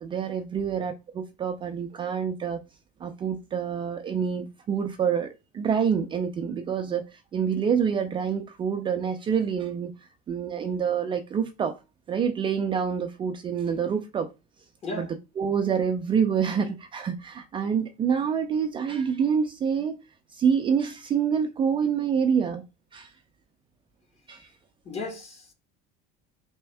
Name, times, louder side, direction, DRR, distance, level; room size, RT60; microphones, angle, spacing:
voice 1, 0.0-2.6 3.0-9.9 10.3-11.8 12.1-14.3 14.9-20.0 20.3-22.6 22.9-23.1 24.3-24.5, right 7 dB, 25° right, 0.4 m, -27 dB
voice 2, 24.8-25.5, left 3 dB, 30° left, 1.4 m, -35 dB
4.4 x 3.4 x 3.3 m
supercardioid pair, 130°, 21 cm